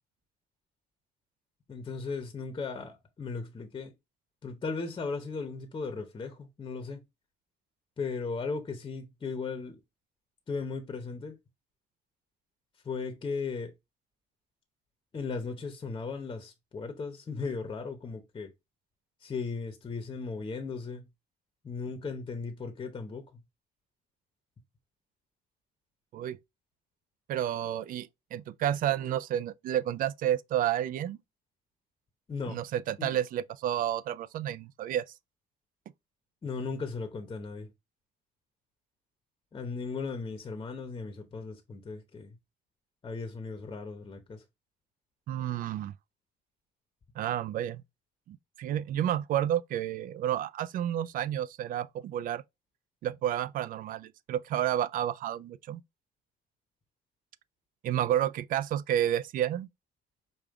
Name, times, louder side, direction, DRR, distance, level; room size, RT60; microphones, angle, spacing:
voice 1, 1.7-3.9 4.4-7.0 8.0-9.8 10.5-11.4 12.8-13.7 15.1-18.5 19.2-21.1 21.6-23.3 32.3-32.6 33.0-33.1 36.4-37.7 39.5-42.4 43.0-44.4, left 4 dB, 25° left, 0.9 m, -37 dB
voice 2, 27.3-31.2 32.5-35.0 45.3-45.9 47.2-47.8 48.3-52.4 53.0-55.8 57.8-59.7, right 11 dB, 55° right, 0.4 m, -30 dB
5.1 x 2.4 x 3.5 m
cardioid pair, 110°, 17 cm